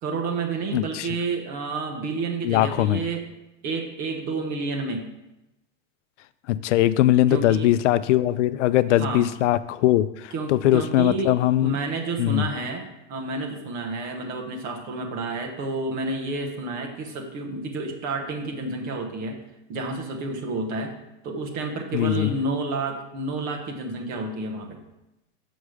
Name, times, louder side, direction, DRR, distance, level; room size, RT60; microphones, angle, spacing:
voice 1, 0.0-3.3 3.6-5.1 7.3-7.7 8.9-9.3 10.3-11.3 11.6-19.3 19.7-20.9 21.2-24.8, right 3 dB, 25° right, 2 dB, 0.9 m, -30 dB
voice 2, 0.7-1.1 2.4-3.0 6.5-11.8 12.2-12.5 21.9-22.3, left 14 dB, 75° left, 16 dB, 0.5 m, -21 dB
6.5 x 6.1 x 4.8 m, 0.94 s
supercardioid pair, 175°, 36 cm